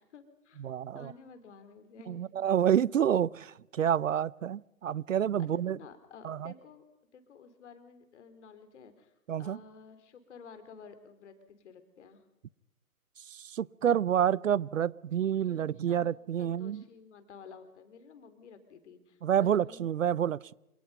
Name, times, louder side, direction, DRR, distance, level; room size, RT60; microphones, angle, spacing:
voice 1, 0.0-0.7 0.9-2.4 5.4-6.8 7.1-9.1 9.4-12.2 15.4-16.1 16.4-20.3, left 6 dB, 50° left, 3.7 m, -52 dB
voice 2, 0.6-1.1 2.1-5.8 6.2-6.5 9.3-9.6 13.3-16.8 19.2-20.5, right 9 dB, 60° right, 0.6 m, -28 dB
27.0 x 18.5 x 5.5 m
figure-of-eight pair, 140°, 43 cm